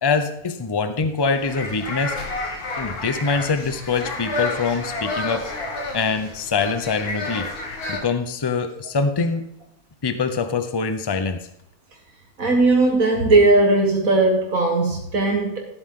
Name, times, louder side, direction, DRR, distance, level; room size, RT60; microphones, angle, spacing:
voice 1, 0.0-2.2 2.8-5.5 5.9-7.5 7.9-9.4 10.0-11.5, left 4 dB, 25° left, 9 dB, 0.6 m, -24 dB
sound 1, 1.2-8.0, left 2 dB, 80° left, 2.2 m, -30 dB
voice 2, 12.4-15.6, right 2 dB, 65° right, 1 dB, 2.0 m, -18 dB
14.0 x 8.1 x 3.8 m, 0.78 s
omnidirectional pair, 1.6 m